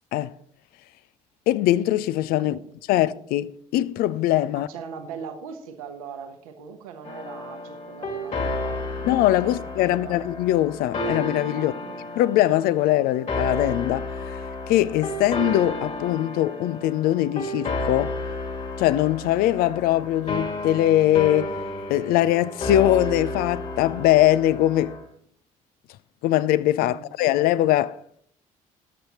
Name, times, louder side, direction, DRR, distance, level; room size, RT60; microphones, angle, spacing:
voice 1, 1.5-2.6 2.9-4.7 9.0-11.7 12.2-18.2 18.8-21.5 21.9-25.0 26.2-28.0, left 14 dB, 55° left, 0.6 m, -22 dB
voice 2, 4.5-8.9 9.4-10.2 11.5-12.0 26.8-27.1, right 6 dB, 75° right, 1.1 m, -40 dB
sound 1, 7.0-25.0, left 2 dB, 40° left, 2.8 m, -32 dB
22.0 x 8.0 x 3.0 m
figure-of-eight pair, 50°, 18 cm